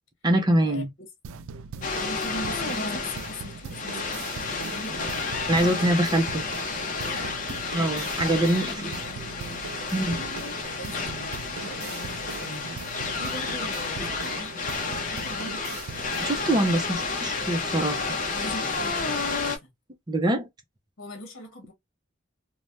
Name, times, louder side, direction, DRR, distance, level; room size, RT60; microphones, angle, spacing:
voice 1, 0.2-0.9 5.5-6.4 7.7-8.8 9.9-10.2 16.2-18.0 20.1-20.5, right 1 dB, 20° right, 0.5 m, -24 dB
sound 1, 1.2-16.6, right 6 dB, 80° right, 0.3 m, -41 dB
sound 2, 1.8-19.6, left 4 dB, 40° left, 0.7 m, -31 dB
voice 2, 2.0-4.4 4.6-5.3 5.6-5.9 7.0-7.4 8.5-10.3 10.6-12.7 13.1-15.6 18.3-19.7 21.0-21.7, left 1 dB, 70° left, 1.0 m, -41 dB
3.2 x 2.1 x 2.5 m
head